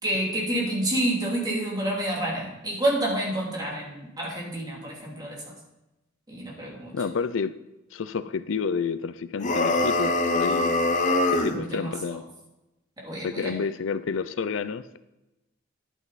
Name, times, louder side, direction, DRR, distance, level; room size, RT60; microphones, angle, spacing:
voice 1, 0.0-5.4 6.3-6.9 11.5-11.9 13.0-13.5, right 1 dB, 20° right, -3 dB, 3.0 m, -28 dB
voice 2, 6.9-7.5 7.9-10.8 11.3-12.2 13.2-15.0, left 5 dB, 70° left, 14 dB, 0.5 m, -29 dB
sound 1, 9.4-11.6, left 2 dB, 40° left, 0.9 m, -23 dB
11.0 x 9.1 x 4.1 m, 0.96 s
head